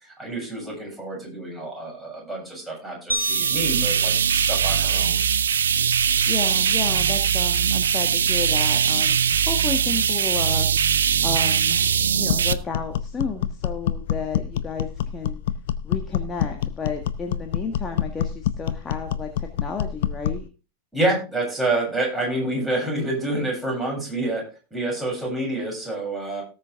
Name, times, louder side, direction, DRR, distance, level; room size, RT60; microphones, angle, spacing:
voice 1, 0.2-5.2 20.9-24.4 24.7-26.4, right 2 dB, 5° right, -4 dB, 7.9 m, -27 dB
sound 1, 3.1-5.5, equal, 85° right, 1.2 m, -33 dB
sound 2, 3.2-12.5, right 7 dB, 65° right, 0.6 m, -21 dB
voice 2, 6.3-10.8 11.2-15.4 15.8-20.5, left 4 dB, 20° left, 3 dB, 1.7 m, -32 dB
sound 3, 12.3-20.5, left 10 dB, 55° left, 0.7 m, -27 dB
18.0 x 6.5 x 3.6 m, 0.33 s
figure-of-eight pair, 90°, 0 cm